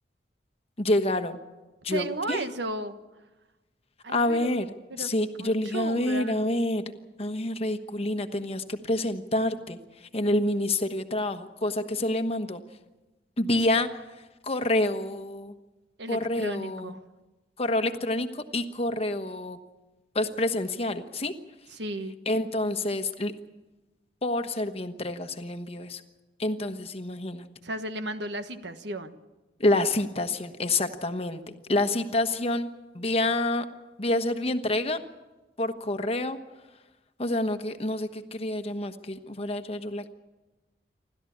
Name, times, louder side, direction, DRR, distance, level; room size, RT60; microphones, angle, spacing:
voice 1, 0.8-1.4 1.8-2.4 4.1-4.7 5.0-6.8 7.2-12.6 13.4-14.0 14.4-15.5 16.1-16.9 17.6-19.6 20.1-21.3 22.3-23.3 24.2-26.0 26.4-27.4 29.6-31.4 31.7-32.7 32.9-33.6 34.0-35.0 35.6-36.4 37.2-40.1, left 1 dB, 35° left, 8 dB, 1.2 m, -27 dB
voice 2, 1.9-3.0 4.0-4.5 4.9-6.4 16.0-17.0 21.7-22.1 27.6-29.2, right 1 dB, 75° right, 9 dB, 1.4 m, -34 dB
29.0 x 13.0 x 8.6 m, 1.1 s
head